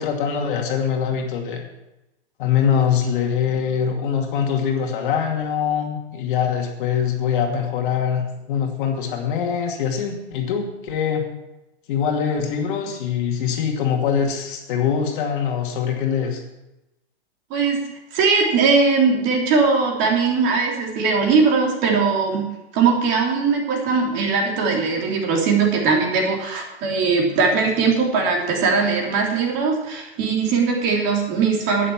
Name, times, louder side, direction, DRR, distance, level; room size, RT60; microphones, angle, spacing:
voice 1, 0.0-1.6 2.4-11.3 11.9-16.4, left 7 dB, 50° left, 2 dB, 2.5 m, -23 dB
voice 2, 17.5-17.8 18.1-22.4 22.7-31.9, right 4 dB, 35° right, 0 dB, 3.2 m, -20 dB
11.0 x 9.9 x 6.0 m, 0.95 s
hypercardioid pair, 140°, 34 cm